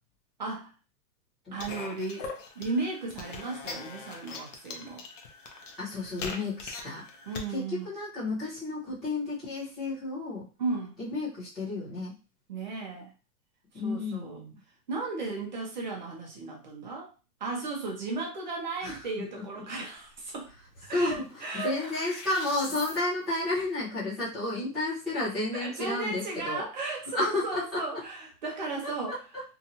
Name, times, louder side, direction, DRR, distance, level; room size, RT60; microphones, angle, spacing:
voice 1, 0.4-0.7 1.5-5.0 7.3-7.9 10.6-11.0 12.5-13.1 13.8-14.4 14.9-17.1 17.4-20.5 20.8-21.9 25.5-29.1, right 3 dB, 30° right, -1 dB, 0.5 m, -35 dB
sound 1, 1.6-7.5, left 4 dB, 50° left, 0.6 m, -41 dB
voice 2, 5.8-7.0 7.5-10.5 11.0-12.1 13.7-14.6 18.8-19.1 19.4-19.5 20.9-26.7 27.1-28.0 28.8-29.4, left 2 dB, ahead, -14 dB, 0.8 m, -32 dB
sound 2, 20.1-20.2 20.5-23.0, left 2 dB, 80° left, 1.4 m, -44 dB
2.7 x 2.3 x 2.7 m, 0.33 s
hypercardioid pair, 165°, 47 cm